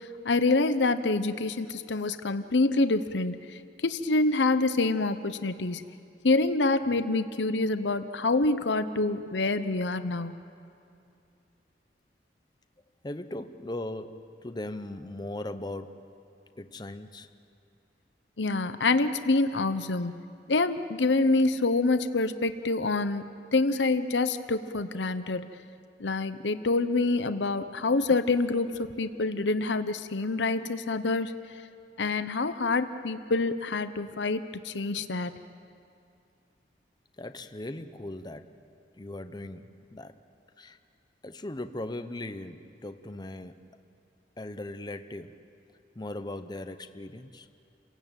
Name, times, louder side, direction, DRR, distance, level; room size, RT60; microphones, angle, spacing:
voice 1, 0.0-5.8 6.2-10.4 18.4-20.2 20.5-23.2 23.5-25.5 26.0-31.3 32.0-35.3, left 3 dB, 85° left, 11 dB, 0.9 m, -26 dB
voice 2, 13.0-16.0 16.6-17.3 37.2-38.5 39.0-40.2 40.6-40.8 41.2-43.7 44.4-45.4 46.0-47.5, left 1 dB, 25° left, 9 dB, 0.8 m, -39 dB
29.5 x 17.0 x 9.0 m, 2.5 s
head